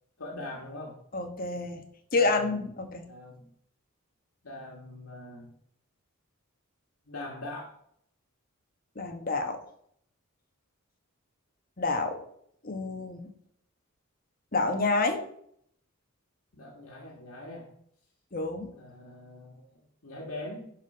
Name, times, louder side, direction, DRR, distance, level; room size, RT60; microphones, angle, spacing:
voice 1, 0.2-1.0 2.1-2.7 3.1-3.5 4.4-5.5 7.1-7.8 16.5-17.7 18.7-20.7, left 1 dB, 80° left, -2 dB, 1.6 m, -42 dB
voice 2, 1.1-1.8 2.1-3.0 9.0-9.6 11.8-12.2 12.6-13.2 14.5-15.2 18.3-18.7, left 3 dB, 40° left, 5 dB, 1.2 m, -28 dB
10.5 x 4.3 x 5.4 m, 0.68 s
head